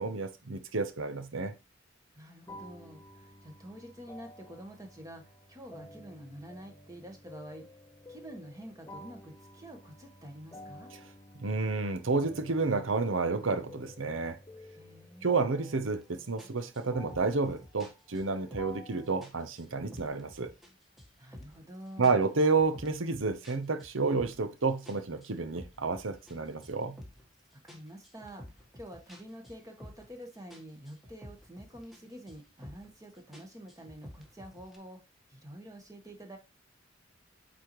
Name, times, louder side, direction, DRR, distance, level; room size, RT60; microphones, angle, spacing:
voice 1, 0.0-1.5 11.4-14.4 15.2-20.5 22.0-27.0, right 4 dB, 80° right, 0.9 m, -30 dB
voice 2, 2.1-7.7 8.1-10.9 14.7-15.3 21.2-22.2 27.5-35.0 35.3-36.4, equal, 15° right, 1.5 m, -48 dB
sound 1, 2.5-19.1, left 1 dB, 15° left, 0.8 m, -51 dB
sound 2, 15.8-16.0 16.4-18.9 19.2-20.7 21.0-21.7 22.0-24.5 24.9-27.3 27.7-30.2 30.5-32.0 32.3-33.0 33.3-34.8, left 1 dB, ahead, 1.4 m, -51 dB
8.2 x 4.1 x 3.1 m
head